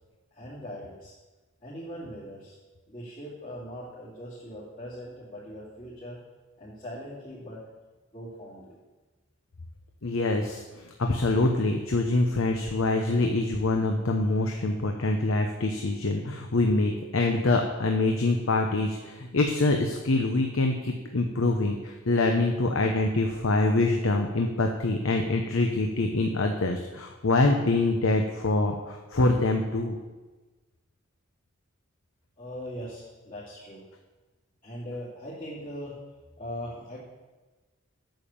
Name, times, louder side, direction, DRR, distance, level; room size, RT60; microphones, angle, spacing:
voice 1, 0.3-1.1 1.6-2.6 2.9-6.2 6.6-7.6 8.1-8.8 32.4-33.8 34.6-36.0 36.4-37.0, equal, 40° left, -10 dB, 2.7 m, -40 dB
voice 2, 10.0-30.0, left 2 dB, 80° left, 3 dB, 0.9 m, -25 dB
9.0 x 7.3 x 7.1 m, 1.2 s
head